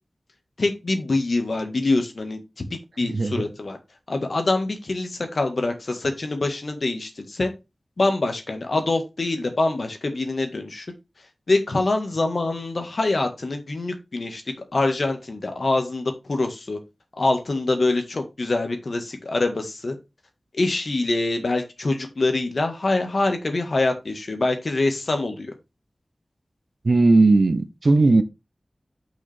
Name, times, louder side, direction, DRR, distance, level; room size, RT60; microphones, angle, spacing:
voice 1, 0.6-2.4 2.7-3.8 4.1-7.5 8.0-10.9 11.5-14.4 14.7-16.8 17.2-20.0 20.6-25.5, left 2 dB, 70° left, 1.7 m, -24 dB
voice 2, 3.0-3.3 26.8-28.2, right 3 dB, 65° right, 0.8 m, -17 dB
6.1 x 5.1 x 4.4 m
wide cardioid pair, 65°, 0 cm